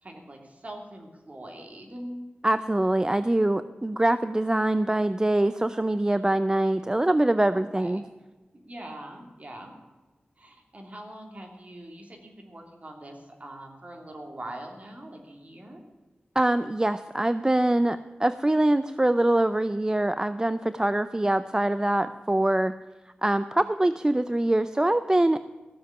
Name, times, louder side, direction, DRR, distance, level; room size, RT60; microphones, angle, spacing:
voice 1, 0.0-2.3 7.5-8.0 8.5-9.7 10.4-15.8, right 1 dB, 40° right, 2 dB, 2.9 m, -42 dB
voice 2, 2.4-8.0 16.4-22.8 23.2-25.4, right 1 dB, 20° right, 12 dB, 0.4 m, -24 dB
15.5 x 7.4 x 10.0 m, 1.2 s
wide cardioid pair, 85°, 4 cm